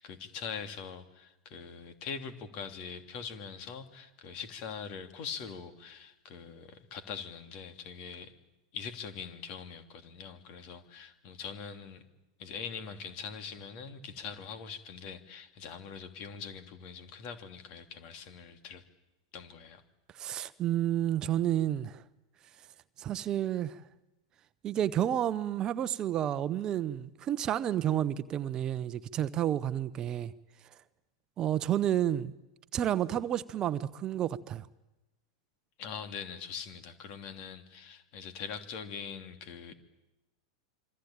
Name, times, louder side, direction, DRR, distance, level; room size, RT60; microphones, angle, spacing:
voice 1, 0.0-8.3 8.7-12.0 12.4-18.8 19.3-19.8 35.8-39.7, left 6 dB, 45° left, 2.9 m, -43 dB
voice 2, 20.2-22.0 23.0-23.8 24.6-30.3 31.4-32.3 32.7-34.7, right 11 dB, 35° right, 0.9 m, -30 dB
26.5 x 25.0 x 8.9 m
hypercardioid pair, 95°, 2 cm